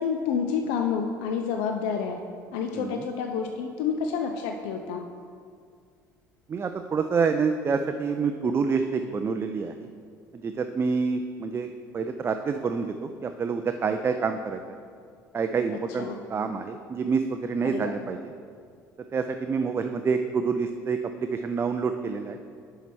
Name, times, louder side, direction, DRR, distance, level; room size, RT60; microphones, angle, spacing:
voice 1, 0.0-2.2 2.5-5.0 15.7-16.2 17.6-18.0, left 6 dB, 55° left, 5 dB, 0.4 m, -29 dB
voice 2, 6.5-9.9 10.4-14.6 15.3-18.2 19.1-22.4, right 5 dB, 25° right, 7 dB, 0.3 m, -27 dB
10.5 x 5.6 x 3.2 m, 2.2 s
figure-of-eight pair, 60°, 10 cm